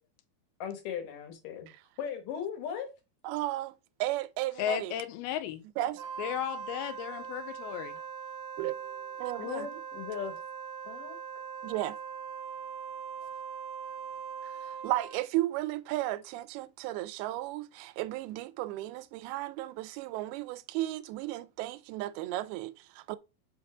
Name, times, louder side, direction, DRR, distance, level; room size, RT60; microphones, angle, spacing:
voice 1, 0.6-1.7 2.0-2.9 9.4-10.3 10.9-11.2, left 8 dB, 65° left, 2.6 m, -37 dB
voice 2, 3.2-3.7 4.0-5.0 5.8-6.0 8.6-9.7 11.6-12.0 14.4-23.2, right 15 dB, 90° right, 2.5 m, -34 dB
voice 3, 4.6-5.6 6.2-8.0, left 11 dB, 90° left, 2.6 m, -34 dB
Wind instrument woodwind instrument, 5.9-15.2, right 7 dB, 75° right, 1.8 m, -41 dB
5.5 x 5.3 x 4.8 m
omnidirectional pair, 4.4 m